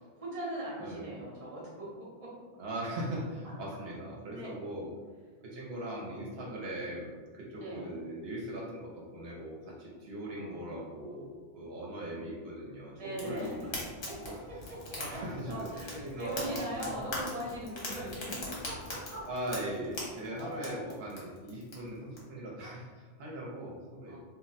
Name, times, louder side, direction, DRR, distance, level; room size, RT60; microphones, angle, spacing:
voice 1, 0.0-2.3 4.3-4.5 7.6-7.9 10.3-11.3 12.9-13.8 14.7-19.3 20.4-20.8 24.1-24.2, equal, 35° right, -5 dB, 0.8 m, -41 dB
voice 2, 2.6-4.9 5.4-13.7 14.2-14.4 15.0-17.5 19.2-24.2, right 1 dB, 75° right, -4 dB, 0.8 m, -40 dB
Fire, 13.1-22.2, left 1 dB, 60° left, 1.0 m, -42 dB
2.2 x 2.1 x 3.8 m, 1.5 s
omnidirectional pair, 1.0 m